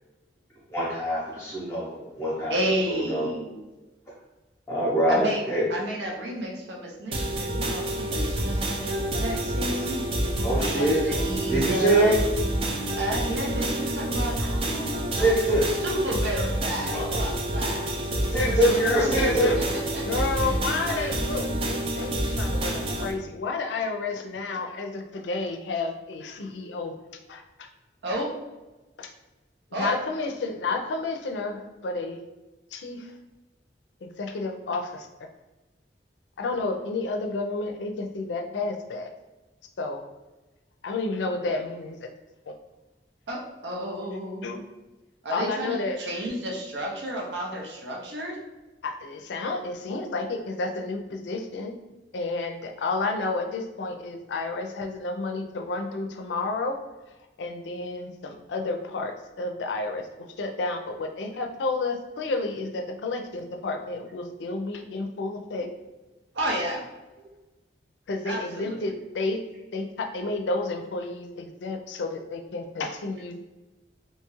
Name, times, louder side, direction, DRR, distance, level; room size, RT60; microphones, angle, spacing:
voice 1, 0.7-2.5 2.9-3.3 4.7-5.7 10.4-11.0 11.4-12.2 15.2-15.8 16.9-17.2 18.2-19.5 20.2-20.3 20.7-21.1, right 1 dB, 15° left, -8 dB, 0.7 m, -24 dB
voice 2, 2.5-3.6 5.1-10.0 10.5-12.1 12.9-15.6 15.8-18.0 19.2-19.3 19.9-20.5 28.0-28.3 29.7-29.9 43.3-44.6 45.2-48.4 66.3-66.8 67.2-67.3 68.3-68.8, equal, 85° right, -1 dB, 0.6 m, -31 dB
sound 1, 7.1-23.1, right 1 dB, 30° right, 0.4 m, -28 dB
voice 3, 18.4-19.6 20.1-26.9 27.3-27.7 29.0-29.1 29.7-32.2 32.7-33.2 34.0-35.1 36.4-39.1 39.8-40.0 40.8-42.1 42.5-42.6 44.4-44.6 45.3-46.0 48.8-51.7 52.1-56.8 57.4-60.1 60.4-65.7 68.1-69.4 69.7-73.3, left 3 dB, 85° left, 4 dB, 0.4 m, -31 dB
2.8 x 2.3 x 3.0 m, 1.1 s
head